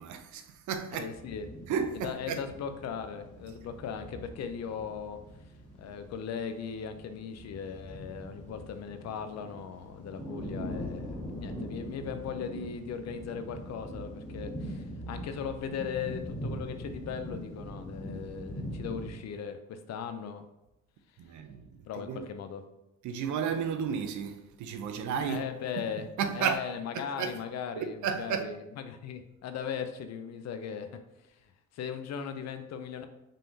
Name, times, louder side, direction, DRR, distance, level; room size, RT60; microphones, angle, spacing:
voice 1, 0.0-1.1 1.7-2.4 21.2-21.7 21.9-22.3 23.0-25.5 26.2-26.6 27.2-27.4 27.8-28.4, right 7 dB, 65° right, 0.6 m, -32 dB
voice 2, 0.9-1.5 1.9-5.2 5.8-20.5 21.8-22.6 25.2-26.1 26.3-33.1, left 7 dB, 55° left, 0.5 m, -38 dB
sound 1, 1.1-19.1, equal, 5° left, 1.6 m, -42 dB
5.4 x 3.6 x 2.7 m
cardioid pair, 125°, 31 cm